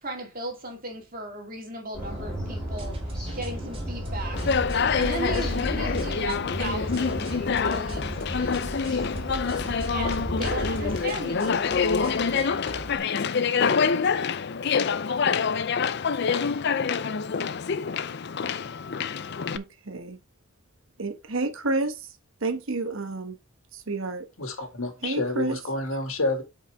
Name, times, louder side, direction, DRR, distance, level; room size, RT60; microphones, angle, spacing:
voice 1, 0.0-4.5 5.0-9.0 9.9-12.9 13.4-13.6, right 1 dB, 45° right, 2.4 m, -37 dB
sound 1, 1.9-11.0, equal, 5° left, 4.7 m, -34 dB
sound 2, 2.8-13.0, right 1 dB, 25° right, 2.5 m, -41 dB
Conversation, 4.3-19.6, left 5 dB, 55° left, 0.5 m, -26 dB
voice 2, 19.5-20.2 21.0-22.1 22.4-23.4 23.7-24.3 25.0-25.6, right 3 dB, 70° right, 1.1 m, -30 dB
voice 3, 24.4-26.4, left 2 dB, 80° left, 2.2 m, -29 dB
8.5 x 5.1 x 3.4 m
head